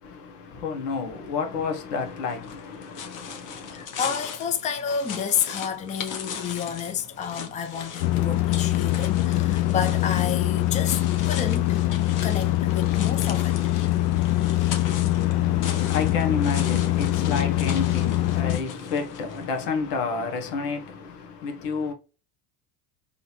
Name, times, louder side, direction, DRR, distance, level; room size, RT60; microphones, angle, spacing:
voice 1, 0.0-3.9 15.2-21.9, left 5 dB, 85° left, 1.5 m, -30 dB
sound 1, 2.3-19.5, left 6 dB, 45° left, 1.2 m, -39 dB
voice 2, 3.7-11.8 12.2-13.5 13.9-14.1, left 7 dB, 15° left, 0.5 m, -30 dB
sound 2, 8.0-18.6, left 15 dB, 60° left, 0.6 m, -23 dB
3.9 x 2.8 x 4.4 m
supercardioid pair, 115°, 45 cm